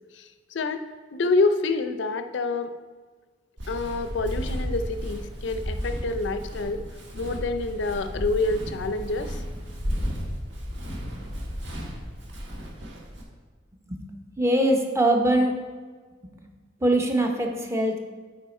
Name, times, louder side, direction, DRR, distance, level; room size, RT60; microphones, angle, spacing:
voice 1, 0.1-0.8 1.1-2.7 3.7-6.8 7.1-9.4, left 3 dB, 70° left, 9 dB, 0.5 m, -27 dB
Walk footsteps, 3.6-13.2, equal, 70° right, 1.5 m, -33 dB
voice 2, 14.4-15.6 16.4-16.5 16.8-18.0, right 1 dB, 15° right, 2 dB, 0.7 m, -22 dB
8.2 x 4.8 x 4.2 m, 1.5 s
head